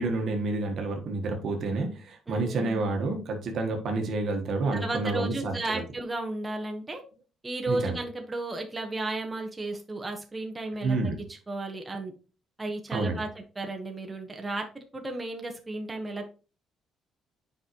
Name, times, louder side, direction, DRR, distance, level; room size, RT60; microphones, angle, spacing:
voice 1, 0.0-5.8 7.7-8.0 10.8-11.2 12.9-13.2, right 3 dB, 60° right, 3 dB, 1.4 m, -29 dB
voice 2, 2.3-2.8 4.7-7.0 7.4-12.1 12.6-16.3, right 2 dB, 20° right, 2 dB, 1.2 m, -34 dB
7.7 x 5.4 x 3.0 m, 0.36 s
cardioid pair, 80°, 0 cm